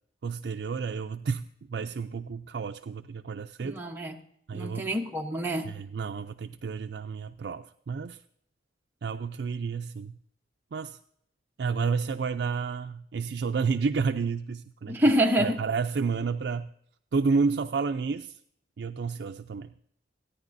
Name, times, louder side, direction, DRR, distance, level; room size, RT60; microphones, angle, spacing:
voice 1, 0.2-3.8 4.5-4.9 5.6-8.2 9.0-10.2 10.7-11.0 11.6-15.0 15.4-16.7 17.1-18.4 18.8-19.7, right 5 dB, 65° right, 0.4 m, -30 dB
voice 2, 3.6-4.2 4.5-5.7 14.9-15.6, right 1 dB, 10° right, 0.9 m, -26 dB
27.0 x 9.7 x 2.6 m
head